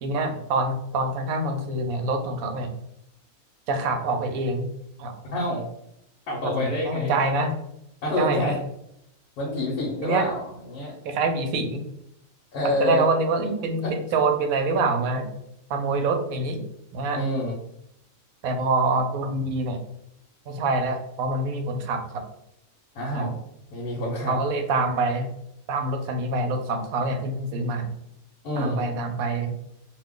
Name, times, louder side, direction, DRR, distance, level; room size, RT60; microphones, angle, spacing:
voice 1, 0.0-2.7 3.7-4.7 5.0-5.2 6.4-7.5 8.2-8.6 10.0-10.3 11.0-11.8 12.6-15.3 15.7-16.6 16.9-17.2 18.4-19.8 20.5-22.2 23.1-23.3 24.3-25.3 25.7-27.9 28.5-29.5, right 3 dB, 75° right, 5 dB, 1.0 m, -25 dB
voice 2, 5.3-5.6 6.3-7.1 8.0-8.6 9.4-11.0 12.5-13.0 13.8-13.9 17.1-17.5 22.9-23.4 23.7-24.4 28.4-28.8, left 1 dB, 85° left, -4 dB, 1.3 m, -27 dB
2.9 x 2.2 x 3.6 m, 0.77 s
omnidirectional pair, 1.5 m